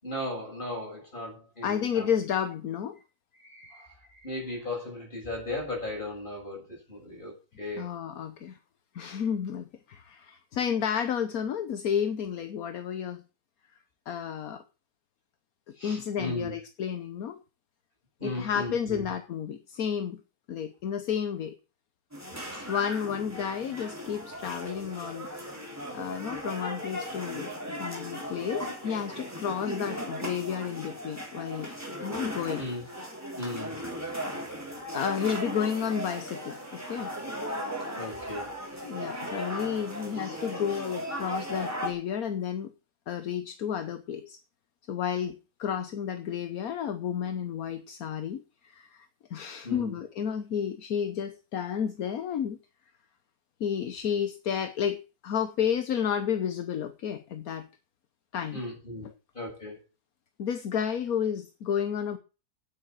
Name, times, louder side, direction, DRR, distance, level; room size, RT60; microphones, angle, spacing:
voice 1, 0.0-2.1 3.4-3.9 4.2-7.9 15.8-16.6 18.2-19.1 22.5-22.6 23.4-23.5 32.6-32.8 33.4-33.8 38.0-38.5 49.6-50.0 58.5-59.1 59.3-59.8, left 1 dB, 30° left, -2 dB, 7.2 m, -36 dB
voice 2, 1.6-3.0 7.8-8.6 8.9-13.2 14.1-14.6 15.8-17.4 18.2-20.2 20.5-21.5 22.7-25.3 25.9-31.7 32.0-32.6 34.9-37.1 38.8-42.7 43.1-44.4 44.9-52.6 53.6-57.7 58.3-58.6 59.0-59.1 60.4-62.2, left 8 dB, 70° left, 9 dB, 1.4 m, -31 dB
sound 1, 22.1-41.9, equal, 10° right, 3.3 m, -37 dB
9.2 x 8.2 x 7.5 m, 0.32 s
omnidirectional pair, 1.6 m